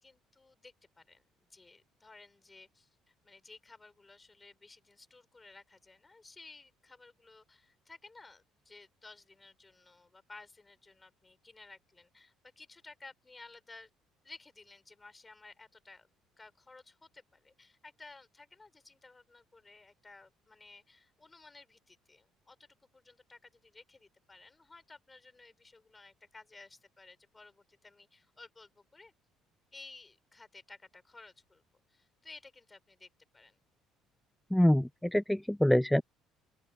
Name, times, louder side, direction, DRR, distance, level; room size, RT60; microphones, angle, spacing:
voice 1, 0.0-13.9 14.2-16.1 16.4-29.1 29.7-31.6 31.9-33.6, left 3 dB, 20° left, 5.1 m, -55 dB
voice 2, 34.5-36.0, left 1 dB, 5° left, 0.4 m, -25 dB
open air
supercardioid pair, 80°, 0 cm